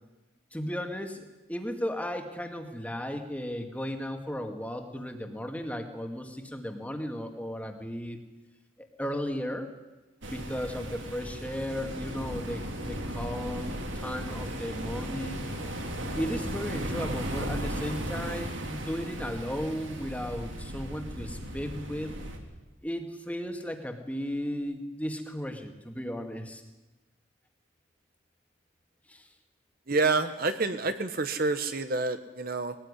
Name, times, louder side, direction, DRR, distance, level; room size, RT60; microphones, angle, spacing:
voice 1, 0.5-8.2 8.8-9.7 10.3-15.4 16.2-22.1 22.8-26.6 29.1-29.3, equal, 5° left, 5 dB, 2.2 m, -35 dB
sound 1, 10.2-22.4, equal, 65° right, 3.7 m, -36 dB
voice 2, 29.9-32.7, right 3 dB, 45° right, 9 dB, 1.2 m, -28 dB
22.0 x 19.0 x 9.9 m, 1.1 s
head